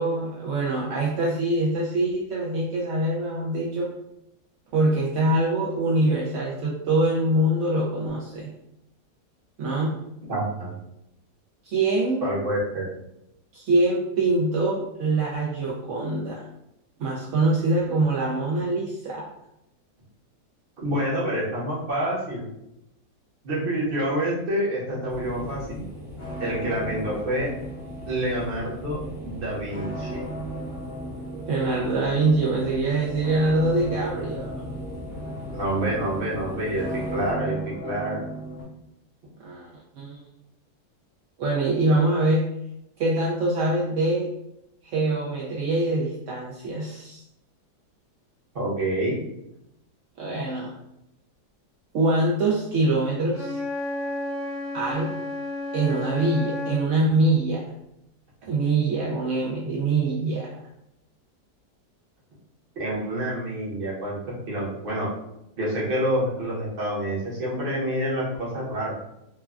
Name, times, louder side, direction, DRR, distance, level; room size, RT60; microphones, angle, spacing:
voice 1, 0.0-3.9 4.7-8.5 9.6-9.9 11.6-12.2 13.5-16.4 17.0-19.2 31.5-34.5 39.4-39.7 40.0-40.2 41.4-42.4 43.0-44.3 44.8-47.2 50.2-50.7 51.9-53.6 54.7-55.1 55.7-57.6 58.5-60.5, right 2 dB, 70° right, -5 dB, 0.7 m, -24 dB
voice 2, 10.3-10.7 12.2-12.9 20.8-22.4 23.4-25.9 26.4-27.5 28.1-30.2 35.5-38.2 48.5-49.2 62.8-65.1 65.6-68.9, right 1 dB, 40° right, -6 dB, 0.9 m, -27 dB
sound 1, 24.9-38.6, right 1 dB, 20° left, 0.4 m, -36 dB
sound 2, 25.1-37.3, equal, 15° right, 0.7 m, -40 dB
Wind instrument woodwind instrument, 53.3-56.9, left 2 dB, 65° left, 1.1 m, -31 dB
3.2 x 2.2 x 2.4 m, 0.83 s
omnidirectional pair, 1.7 m